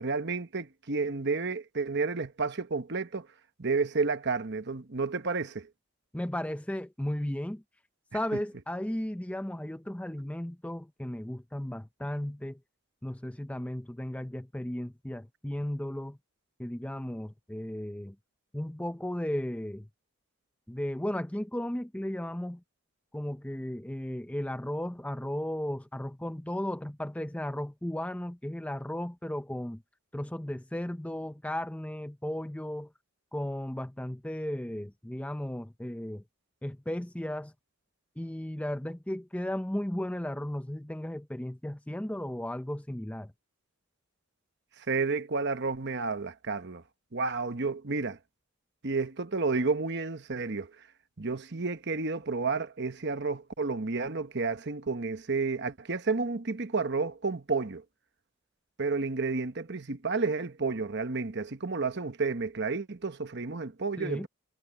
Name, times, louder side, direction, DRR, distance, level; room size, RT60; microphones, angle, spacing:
voice 1, 0.0-3.3 3.6-5.7 44.9-46.8 47.1-48.2 48.8-50.7 51.2-57.8 58.8-64.3, right 4 dB, 50° right, 1.1 m, -31 dB
voice 2, 6.1-7.6 8.1-12.6 13.0-16.2 16.6-18.1 18.5-19.9 20.7-22.6 23.1-29.8 30.1-32.9 33.3-36.2 36.6-37.5 38.2-43.3 64.0-64.3, left 1 dB, 5° left, 0.5 m, -35 dB
head